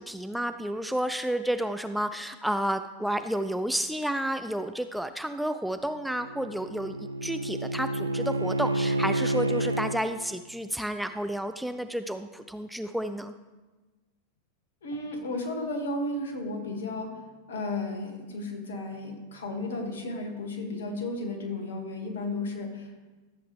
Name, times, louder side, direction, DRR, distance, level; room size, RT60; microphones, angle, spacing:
voice 1, 0.0-7.0 7.2-13.3, right 1 dB, ahead, 9 dB, 0.4 m, -31 dB
Bowed string instrument, 6.0-10.0, right 1 dB, 80° right, 0.3 m, -29 dB
voice 2, 14.8-22.9, left 2 dB, 60° left, 3 dB, 2.1 m, -34 dB
14.0 x 7.8 x 3.4 m, 1.2 s
figure-of-eight pair, 90°, 0 cm